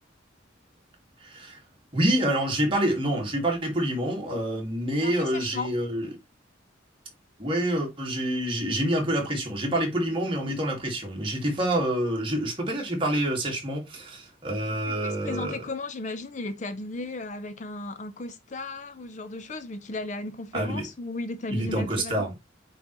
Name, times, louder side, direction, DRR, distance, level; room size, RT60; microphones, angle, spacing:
voice 1, 1.2-1.6 1.9-6.1 7.4-15.6 20.5-20.9 21.5-22.3, right 1 dB, 25° right, 2.0 m, -27 dB
voice 2, 5.0-5.7 14.9-22.3, left 2 dB, 40° left, 0.6 m, -35 dB
8.9 x 3.9 x 3.1 m
head